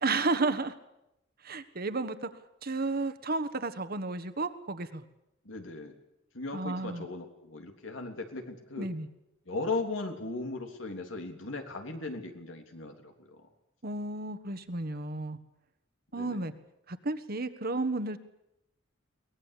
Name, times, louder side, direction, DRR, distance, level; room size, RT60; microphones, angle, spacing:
voice 1, 0.0-0.7 1.4-2.3 2.6-5.0 6.5-7.1 8.8-9.1 13.8-15.4 16.1-16.5 16.9-18.2, right 3 dB, 50° right, 10 dB, 1.5 m, -32 dB
voice 2, 5.4-5.9 6.3-8.9 9.4-13.4 16.1-16.4, left 3 dB, 85° left, 4 dB, 3.3 m, -37 dB
23.0 x 19.0 x 8.4 m, 0.86 s
head